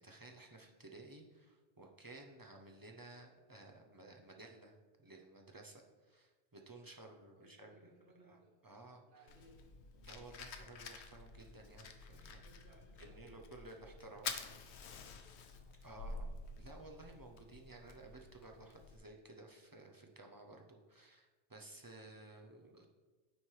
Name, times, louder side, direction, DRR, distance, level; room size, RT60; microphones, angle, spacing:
voice 1, 0.0-7.9 8.2-8.4 8.6-9.3 10.0-12.4 13.0-14.3 15.8-16.3 16.6-22.9, right 2 dB, 25° right, 1 dB, 0.5 m, -55 dB
voice 2, 7.3-9.7 12.2-15.6, right 1 dB, 50° right, 0 dB, 1.4 m, -66 dB
Fire, 9.3-19.0, left 4 dB, 75° left, 0.9 m, -49 dB
9.3 x 3.3 x 4.5 m, 1.3 s
omnidirectional pair, 1.2 m